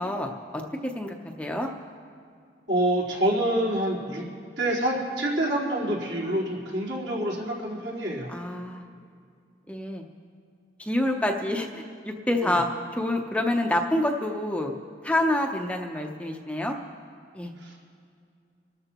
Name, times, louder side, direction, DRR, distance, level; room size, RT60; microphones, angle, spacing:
voice 1, 0.0-1.7 8.3-8.9 9.7-10.0 10.8-12.7 12.9-14.7 15.0-16.7 17.3-17.5, left 1 dB, 5° left, 2 dB, 0.7 m, -27 dB
voice 2, 2.7-4.2 4.6-8.3 12.4-12.5 17.6-17.9, right 1 dB, 70° right, -6 dB, 3.9 m, -27 dB
26.5 x 13.5 x 3.0 m, 2.4 s
head